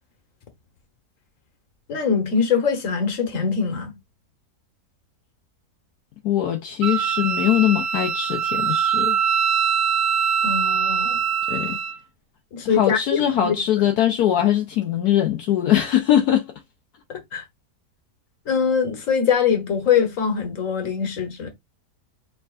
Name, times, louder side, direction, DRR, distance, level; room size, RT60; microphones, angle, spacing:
voice 1, 1.9-3.9 10.4-11.2 12.5-13.6 17.1-17.4 18.5-21.5, left 6 dB, 55° left, 1.5 m, -23 dB
voice 2, 6.2-9.2 11.5-11.8 12.6-16.5, left 11 dB, 75° left, 1.2 m, -21 dB
Wind instrument woodwind instrument, 6.8-12.0, right 7 dB, 75° right, 1.1 m, -23 dB
4.7 x 3.7 x 2.4 m
omnidirectional pair, 1.7 m